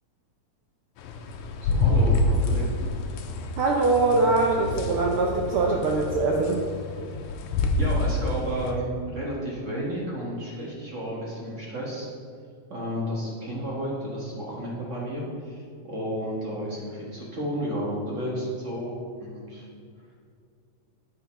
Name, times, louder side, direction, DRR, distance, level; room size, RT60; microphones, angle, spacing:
sound 1, 1.0-8.7, left 2 dB, 85° left, 2.1 m, -27 dB
voice 1, 1.6-2.7 7.8-12.1 12.7-19.7, equal, 40° right, -4 dB, 1.1 m, -32 dB
voice 2, 3.6-6.6, right 3 dB, 85° right, -1 dB, 1.2 m, -23 dB
8.3 x 5.7 x 5.8 m, 2.2 s
omnidirectional pair, 3.4 m